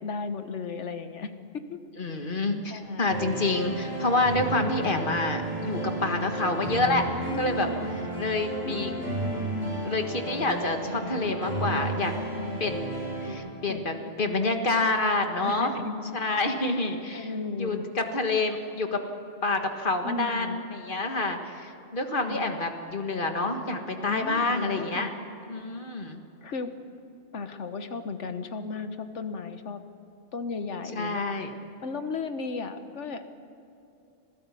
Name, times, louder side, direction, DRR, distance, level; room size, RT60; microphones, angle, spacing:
voice 1, 0.0-1.8 2.7-3.2 6.9-8.0 8.6-9.7 11.6-12.6 13.7-14.5 15.4-16.0 17.1-17.9 20.0-20.6 22.3-22.6 24.0-25.1 26.4-26.7 27.3-29.8 30.3-31.3 31.8-33.2, left 4 dB, 70° left, 9 dB, 1.5 m, -35 dB
voice 2, 2.0-7.0 7.4-7.7 8.2-8.9 9.8-12.1 12.6-13.0 13.2-15.7 16.1-17.3 17.6-19.0 19.4-25.1 25.5-26.2 30.9-31.5, left 2 dB, 45° left, 5 dB, 1.8 m, -28 dB
sound 1, 3.1-13.3, right 2 dB, 35° right, 7.2 m, -33 dB
26.0 x 15.5 x 8.4 m, 2.7 s
omnidirectional pair, 1.3 m